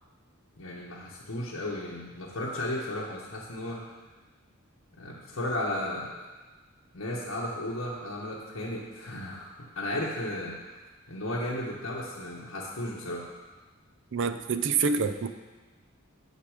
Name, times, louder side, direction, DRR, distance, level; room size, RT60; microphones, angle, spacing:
voice 1, 0.6-3.9 5.0-6.3 6.9-10.8 11.1-13.3, left 1 dB, 85° left, -5 dB, 1.1 m, -34 dB
voice 2, 14.1-15.3, right 5 dB, 65° right, 10 dB, 0.5 m, -27 dB
7.4 x 6.7 x 4.9 m, 1.3 s
head